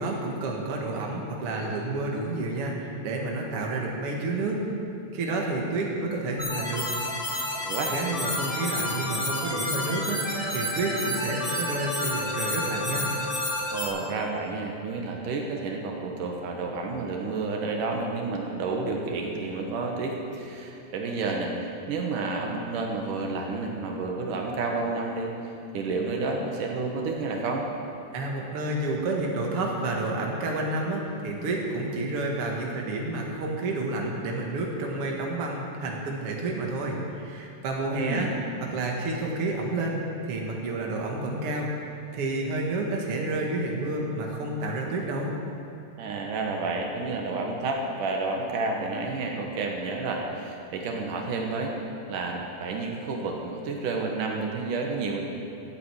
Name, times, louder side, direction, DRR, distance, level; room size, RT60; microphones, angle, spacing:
voice 1, 0.0-4.6 5.1-6.9 7.9-10.2 10.5-13.1 28.1-38.3 38.7-41.7 42.1-45.3, right 2 dB, 50° right, -1 dB, 2.5 m, -30 dB
sound 1, 6.4-13.9, left 1 dB, 15° left, 1.8 m, -30 dB
voice 2, 13.7-25.3 25.7-27.7 37.9-38.3 46.0-51.7 52.1-55.2, right 3 dB, 80° right, 1 dB, 2.8 m, -30 dB
14.0 x 8.3 x 8.5 m, 2.7 s
omnidirectional pair, 3.7 m